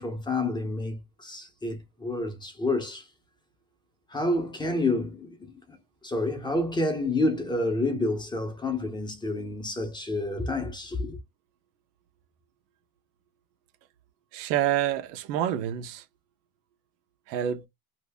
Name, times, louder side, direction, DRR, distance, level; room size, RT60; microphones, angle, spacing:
voice 1, 0.0-3.0 4.1-5.8 6.0-11.2, left 2 dB, 10° left, 0.7 m, -29 dB
voice 2, 14.3-16.1 17.3-17.7, right 11 dB, 90° right, 0.9 m, -27 dB
2.7 x 2.6 x 3.4 m
cardioid pair, 150°, 48 cm